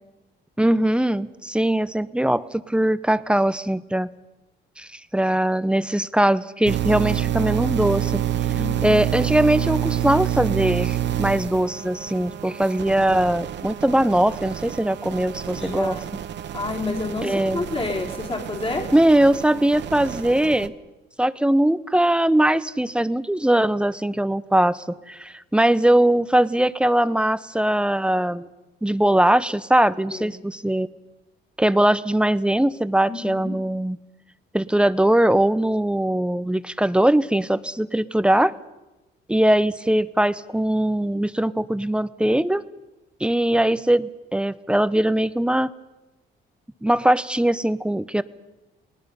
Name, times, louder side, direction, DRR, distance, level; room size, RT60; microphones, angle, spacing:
voice 1, 0.6-4.1 4.8-8.2 8.8-16.0 17.2-17.6 18.9-20.7 21.2-28.5 28.8-30.9 31.6-34.0 34.5-38.5 39.3-42.6 43.2-45.7 46.8-48.2, right 1 dB, 5° right, 15 dB, 0.7 m, -21 dB
sound 1, 6.6-20.7, right 11 dB, 65° right, 1.0 m, -28 dB
voice 2, 8.5-9.0 15.5-16.1 16.5-18.9 30.1-30.3 33.1-33.6, left 3 dB, 30° left, 0 dB, 3.3 m, -29 dB
28.5 x 19.0 x 5.5 m, 1.0 s
cardioid pair, 90°, 20 cm